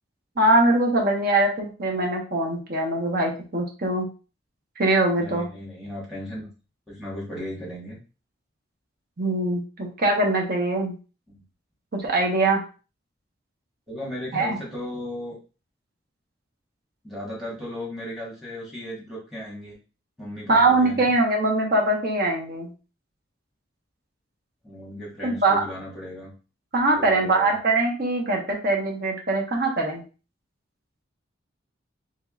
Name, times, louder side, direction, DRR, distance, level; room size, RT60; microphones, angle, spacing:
voice 1, 0.4-4.1 4.8-5.5 9.2-10.9 12.0-12.6 14.3-14.6 20.5-22.7 25.2-25.6 26.7-30.0, right 2 dB, 50° right, 1 dB, 0.9 m, -22 dB
voice 2, 5.2-6.5 6.9-8.0 11.3-11.4 13.9-15.4 17.0-19.7 20.2-21.1 24.6-26.3 27.0-27.5, left 1 dB, ahead, -6 dB, 1.4 m, -36 dB
3.5 x 3.0 x 2.4 m, 0.34 s
head